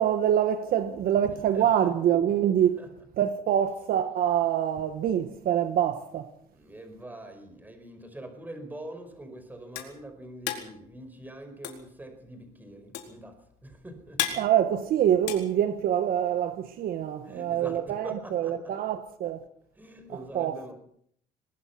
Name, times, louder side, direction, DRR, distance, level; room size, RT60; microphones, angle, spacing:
voice 1, 0.0-2.8 3.2-6.3 14.4-19.4 20.3-20.7, right 10 dB, 60° right, 1.4 m, -25 dB
voice 2, 1.5-1.9 2.8-3.1 6.5-14.2 17.2-18.7 19.8-20.7, right 1 dB, 10° right, 5.2 m, -44 dB
sound 1, 9.1-16.3, left 11 dB, 85° left, 4.2 m, -36 dB
22.0 x 20.0 x 6.0 m
cardioid pair, 120°, 17 cm